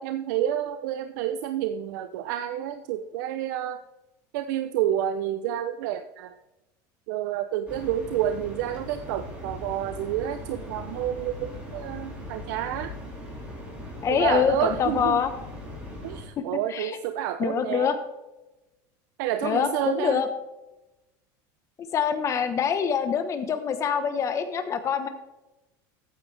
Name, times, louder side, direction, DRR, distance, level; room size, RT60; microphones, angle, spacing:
voice 1, 0.0-3.8 4.3-6.3 7.1-12.9 14.1-15.2 16.0-17.9 19.2-20.2, right 11 dB, 80° right, 9 dB, 0.7 m, -29 dB
sound 1, 7.7-16.2, left 1 dB, 10° right, 3.8 m, -39 dB
voice 2, 14.0-15.3 16.7-17.0 17.4-18.0 19.4-20.3 21.8-25.1, left 7 dB, 30° left, 9 dB, 1.3 m, -25 dB
13.5 x 9.4 x 3.4 m, 1.0 s
cardioid pair, 150°, 10 cm